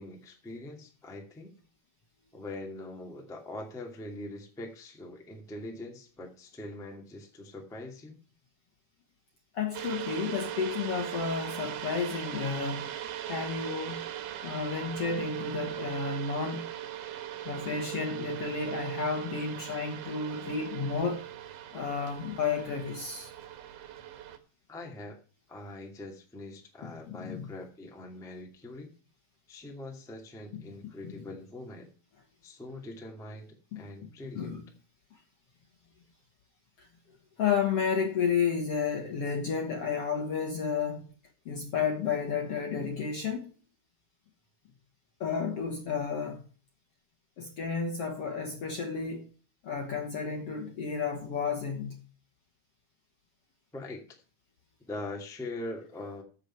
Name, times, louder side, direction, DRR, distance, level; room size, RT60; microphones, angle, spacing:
voice 1, 0.0-1.5 2.3-8.2 24.7-25.2 25.5-28.9 29.5-31.9 32.4-34.6 53.7-54.2 54.9-56.2, left 2 dB, ahead, 1.1 m, -42 dB
voice 2, 9.5-12.9 13.3-14.1 14.4-16.7 17.4-21.2 21.7-23.3 26.8-27.5 30.5-30.6 31.0-31.1 33.7-33.8 34.4-34.6 36.8-36.9 37.4-41.1 41.5-43.5 45.2-46.4 47.4-49.3 49.6-52.0, left 6 dB, 55° left, 1.8 m, -32 dB
sound 1, 9.7-24.4, right 11 dB, 85° right, 3.2 m, -39 dB
14.5 x 6.8 x 4.4 m
omnidirectional pair, 4.4 m